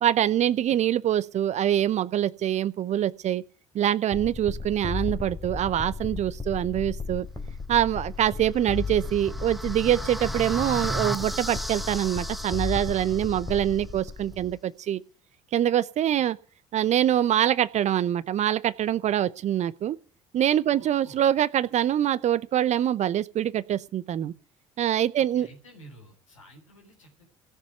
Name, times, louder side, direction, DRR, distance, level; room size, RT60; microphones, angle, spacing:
voice 1, 0.0-3.4 3.7-7.3 7.7-15.0 15.5-16.4 16.7-20.0 20.3-24.3 24.8-25.5, right 11 dB, 45° right, 0.7 m, -24 dB
sound 1, 4.1-14.5, left 4 dB, 20° left, 3.3 m, -35 dB
sound 2, 8.5-13.6, right 1 dB, ahead, 0.8 m, -35 dB
voice 2, 20.7-21.2 25.3-27.3, right 1 dB, 85° left, 3.8 m, -51 dB
17.0 x 7.1 x 9.1 m
figure-of-eight pair, 55°, 16 cm